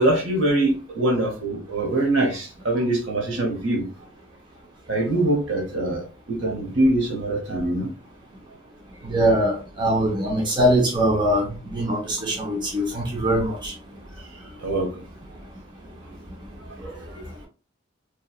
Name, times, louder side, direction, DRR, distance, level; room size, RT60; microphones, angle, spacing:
voice 1, 0.0-3.8 4.9-7.9 14.6-15.0 16.8-17.3, right 1 dB, 75° right, 2 dB, 0.9 m, -23 dB
voice 2, 9.0-13.7, equal, 25° right, -1 dB, 0.6 m, -22 dB
2.8 x 2.3 x 2.2 m, 0.34 s
head